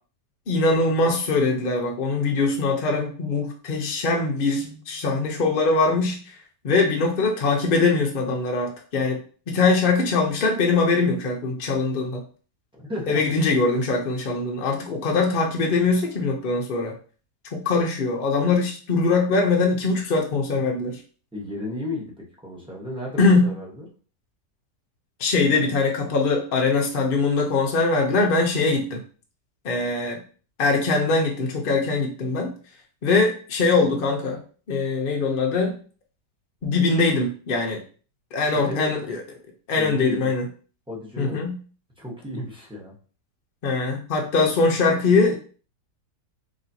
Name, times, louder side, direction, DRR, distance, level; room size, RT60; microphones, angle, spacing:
voice 1, 0.5-6.3 6.6-9.2 9.5-12.2 13.1-16.9 17.5-21.0 23.2-23.5 25.2-29.0 29.6-30.2 30.6-32.5 33.0-34.4 34.7-35.8 36.6-37.8 38.3-39.2 39.7-40.5 41.2-41.6 43.6-45.3, left 3 dB, 60° left, 0 dB, 0.5 m, -22 dB
voice 2, 12.8-13.2 21.3-22.1 22.4-23.9 29.7-30.1 38.5-38.9 39.8-40.3 40.9-41.4 42.0-42.9, left 1 dB, 5° right, -4 dB, 0.6 m, -34 dB
4.1 x 3.1 x 2.7 m, 0.40 s
omnidirectional pair, 1.8 m